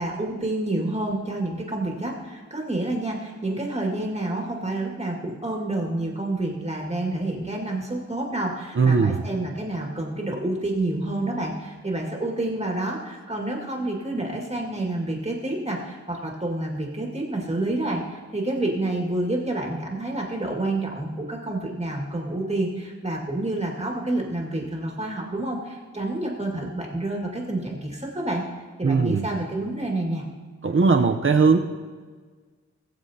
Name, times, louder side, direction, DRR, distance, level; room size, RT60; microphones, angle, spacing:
voice 1, 0.0-28.4 28.8-30.2, right 2 dB, 20° right, -2 dB, 2.1 m, -28 dB
voice 2, 8.8-9.2 28.8-29.3 30.6-31.6, right 4 dB, 45° right, 4 dB, 0.8 m, -19 dB
20.5 x 7.1 x 2.9 m, 1.5 s
cardioid pair, 55°, 30 cm